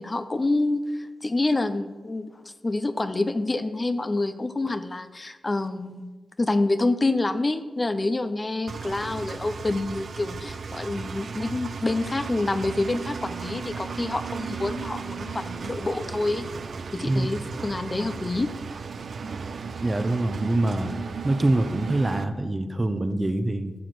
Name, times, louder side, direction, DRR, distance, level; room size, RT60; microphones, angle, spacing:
voice 1, 0.0-2.3 2.6-6.1 6.4-16.5 16.9-18.5, left 2 dB, 30° left, 10 dB, 0.7 m, -27 dB
Engine, 8.7-22.2, right 5 dB, 65° right, 0.6 m, -35 dB
voice 2, 19.8-21.0 21.2-23.7, right 2 dB, 30° right, 8 dB, 1.0 m, -24 dB
13.0 x 4.9 x 8.0 m, 1.3 s
cardioid pair, 65°, 0 cm